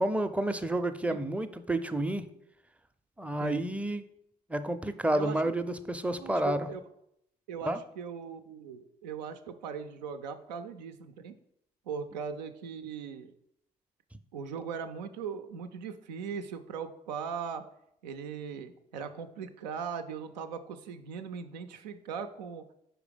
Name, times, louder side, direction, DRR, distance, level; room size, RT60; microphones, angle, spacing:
voice 1, 0.0-2.3 3.2-4.0 4.5-6.7 7.6-7.8, right 1 dB, 5° right, 9 dB, 0.5 m, -30 dB
voice 2, 5.1-5.6 6.1-6.8 7.5-11.4 11.9-13.3 14.3-17.6 18.0-22.7, right 6 dB, 85° right, 8 dB, 0.5 m, -39 dB
4.9 x 4.5 x 5.1 m, 0.77 s
hypercardioid pair, 50°, 21 cm